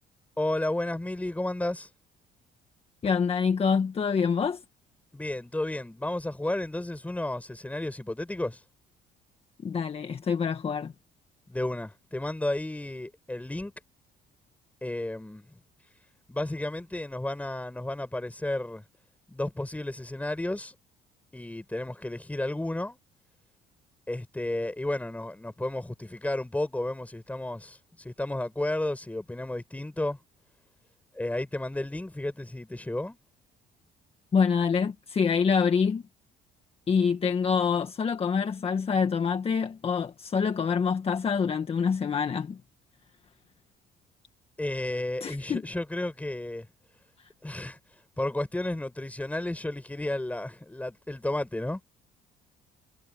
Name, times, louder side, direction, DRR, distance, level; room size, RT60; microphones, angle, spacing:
voice 1, 0.4-1.9 5.1-8.6 11.5-13.7 14.8-15.6 16.3-18.8 19.3-20.8 21.3-23.0 24.1-30.2 31.1-33.2 44.6-46.7 47.4-47.8 48.2-51.8, left 1 dB, 10° left, 6.0 m, -32 dB
voice 2, 3.0-4.6 9.6-10.9 34.3-36.0 36.9-42.6 45.2-45.6, left 6 dB, 35° left, 1.7 m, -26 dB
cardioid pair, 110°, 17 cm